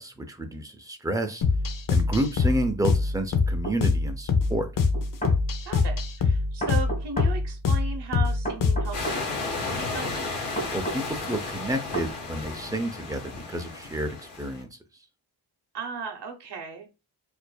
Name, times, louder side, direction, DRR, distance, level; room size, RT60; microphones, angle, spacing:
voice 1, 0.0-1.4 1.9-4.7 10.7-14.7, right 1 dB, 10° right, 0.5 m, -30 dB
sound 1, 1.4-9.0, left 4 dB, 55° left, 0.6 m, -24 dB
sound 2, 3.6-3.8 4.9-5.4 6.6-7.3 8.4-9.2 10.6-11.0 11.9-12.1, right 2 dB, 20° left, 1.2 m, -31 dB
voice 2, 5.6-10.3 15.7-16.9, right 5 dB, 80° right, 0.9 m, -36 dB
sound 3, 8.9-14.6, left 3 dB, 85° left, 1.6 m, -33 dB
4.6 x 2.6 x 2.2 m
wide cardioid pair, 120°, 40 cm